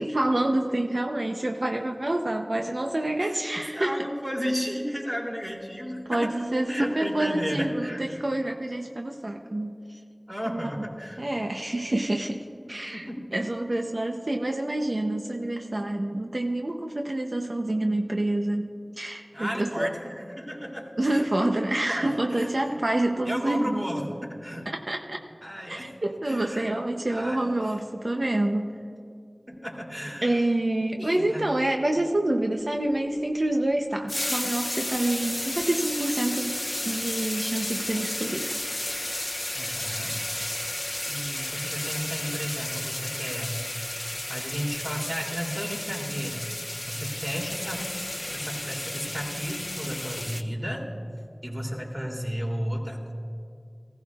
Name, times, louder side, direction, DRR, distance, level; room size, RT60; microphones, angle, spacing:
voice 1, 0.0-4.0 6.1-10.0 10.5-10.7 11.2-19.9 21.0-23.8 24.7-25.2 25.7-28.7 30.2-38.5, right 1 dB, 70° right, 3 dB, 0.7 m, -27 dB
voice 2, 3.2-6.3 6.7-8.0 10.3-11.2 12.9-13.3 19.3-21.3 21.6-22.8 23.2-24.7 25.4-25.9 26.2-26.7 27.1-27.5 29.5-30.4 31.0-31.4 39.5-40.2 41.1-43.5 44.3-46.5 46.9-47.9 48.3-50.8 51.4-53.1, equal, 20° right, -2 dB, 3.0 m, -33 dB
sound 1, 34.1-50.4, left 1 dB, 45° left, 0.6 m, -33 dB
19.5 x 16.0 x 2.4 m, 2.4 s
wide cardioid pair, 40°, 0 cm